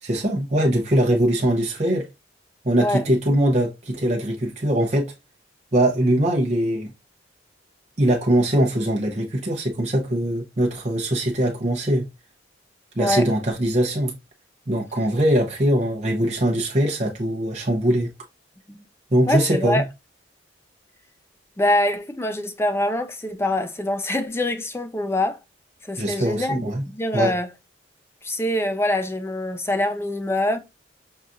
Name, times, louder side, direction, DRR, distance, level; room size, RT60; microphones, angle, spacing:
voice 1, 0.0-2.1 2.6-5.1 5.7-6.9 8.0-12.1 13.0-14.1 14.7-18.1 19.1-19.8 26.0-26.8 27.1-27.3, right 1 dB, 35° right, 0.7 m, -21 dB
voice 2, 19.3-19.9 21.6-25.4 25.9-26.6 26.9-27.5 28.2-30.6, left 1 dB, 15° left, 0.4 m, -24 dB
5.5 x 2.4 x 2.4 m
head